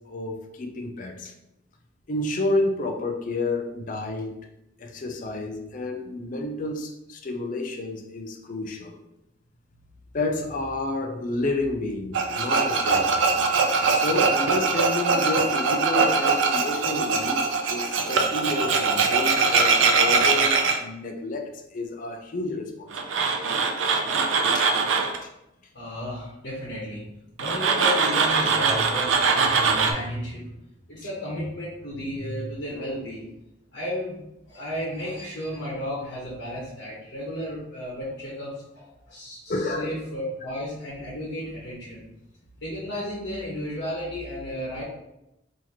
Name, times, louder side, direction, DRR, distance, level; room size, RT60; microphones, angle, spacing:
voice 1, 0.1-1.3 2.1-4.4 4.8-9.0 10.1-13.1 13.9-23.4 24.5-24.8 39.5-39.9, left 2 dB, 45° left, 4 dB, 0.5 m, -30 dB
Tools, 12.1-20.8 22.9-25.2 27.4-29.9, right 4 dB, 90° right, 0.5 m, -22 dB
voice 2, 25.7-27.1 27.4-30.6 30.9-33.3 33.7-34.2 34.4-42.0 42.6-44.8, equal, 70° left, -6 dB, 1.2 m, -33 dB
4.0 x 2.9 x 2.9 m, 0.88 s
head